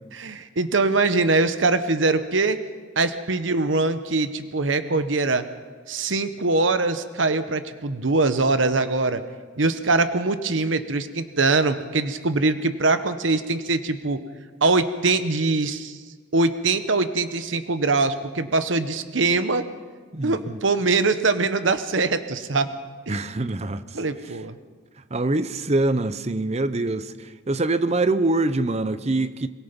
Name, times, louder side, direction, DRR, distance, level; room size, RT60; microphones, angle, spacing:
voice 1, 0.1-2.6 3.0-5.4 5.9-9.2 9.6-14.2 14.6-16.0 16.3-19.7 20.2-22.7 23.1-23.2 23.9-24.5, right 3 dB, 90° right, 1.1 m, -22 dB
voice 2, 20.1-20.6 23.1-23.8 25.1-29.5, right 2 dB, 35° right, 0.8 m, -24 dB
23.0 x 22.5 x 5.3 m
head